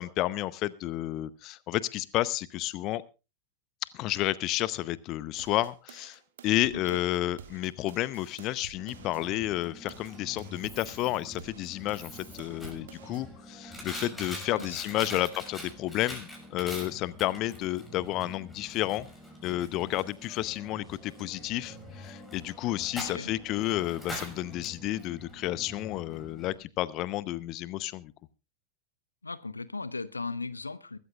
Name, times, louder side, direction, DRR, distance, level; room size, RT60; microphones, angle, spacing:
voice 1, 0.0-3.0 3.9-19.1 19.4-28.1, left 15 dB, 40° left, 19 dB, 0.7 m, -31 dB
sound 1, 5.4-9.2 9.6-13.2, right 8 dB, 60° right, 1.7 m, -51 dB
voice 2, 6.7-7.0 14.5-15.2 23.0-23.3 29.2-31.0, left 3 dB, 80° left, 16 dB, 0.8 m, -38 dB
Coin (dropping), 8.8-26.5, equal, 10° left, 6.3 m, -44 dB
23.0 x 13.5 x 2.4 m, 0.29 s
figure-of-eight pair, 90°, 0 cm